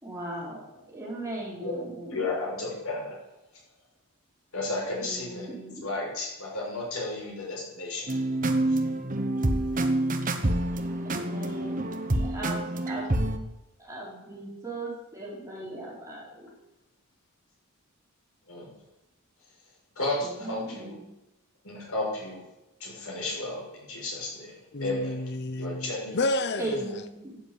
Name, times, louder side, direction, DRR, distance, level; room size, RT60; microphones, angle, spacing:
voice 1, 0.0-2.3 5.0-5.9 11.0-13.1 13.8-16.5 20.2-21.1 26.6-27.4, right 1 dB, 15° right, 5.1 m, -38 dB
voice 2, 2.1-3.2 4.5-5.5 5.8-8.1 18.5-18.7 20.0-21.0 21.6-22.5 22.8-24.5 24.8-25.2 25.6-26.2 26.5-26.7, left 2 dB, 75° left, 6.9 m, -33 dB
sound 1, 8.1-13.4, right 1 dB, 35° right, 1.1 m, -27 dB
voice 3, 9.2-9.6 24.7-26.9, left 2 dB, 50° left, 0.7 m, -31 dB
13.5 x 8.0 x 8.2 m
head